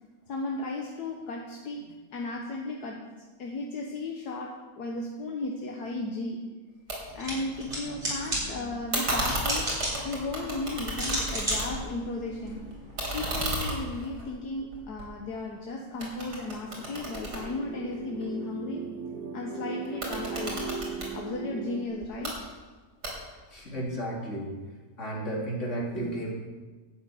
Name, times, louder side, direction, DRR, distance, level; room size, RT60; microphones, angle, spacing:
voice 1, 0.3-3.1 3.4-6.5 7.1-9.7 10.0-12.6 13.1-18.9 19.3-20.7 21.1-22.5, left 2 dB, 75° left, 0 dB, 1.6 m, -35 dB
sound 1, 6.9-7.0 7.3-8.1 8.9-12.0 12.3-15.6 16.0-18.2 19.9-21.1 22.0-22.3 23.0-23.5, right 1 dB, 90° right, 3.5 m, -33 dB
sound 2, 7.1-13.2, equal, 30° right, 4.4 m, -35 dB
sound 3, 16.6-21.9, right 5 dB, 70° right, 1.3 m, -38 dB
voice 2, 23.5-24.5 25.0-26.3, right 1 dB, 50° left, -3 dB, 3.1 m, -33 dB
11.5 x 5.9 x 8.5 m, 1.3 s
omnidirectional pair, 1.7 m